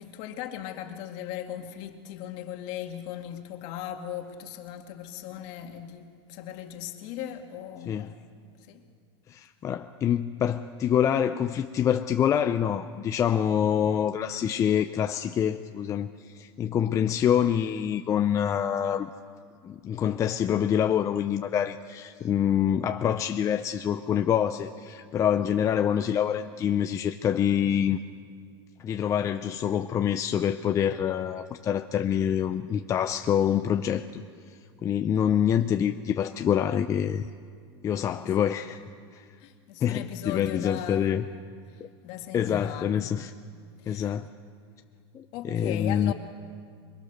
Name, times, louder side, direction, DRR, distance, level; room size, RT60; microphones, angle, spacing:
voice 1, 0.0-8.1 8.7-8.8 38.0-38.3 39.4-41.1 42.0-43.1 43.8-44.2 45.3-46.1, left 11 dB, 50° left, 2.1 m, -38 dB
voice 2, 9.3-19.1 19.6-28.0 28.8-34.2 34.8-37.3 37.8-38.8 39.1-39.2 39.8-41.2 42.3-43.3 43.9-44.3 45.1-46.1, left 9 dB, 20° left, 0.6 m, -26 dB
23.0 x 21.5 x 6.6 m
supercardioid pair, 145°, 14 cm